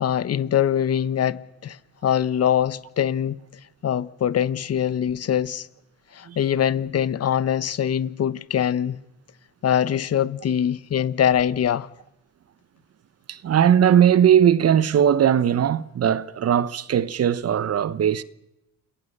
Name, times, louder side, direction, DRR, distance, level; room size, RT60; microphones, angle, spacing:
voice 1, 0.0-1.8 2.0-3.4 3.8-5.7 6.1-9.0 9.6-11.9, left 9 dB, 55° left, 1.1 m, -23 dB
voice 2, 13.3-18.2, right 9 dB, 55° right, 1.1 m, -19 dB
28.5 x 20.5 x 6.8 m
cardioid pair, 90°, 30 cm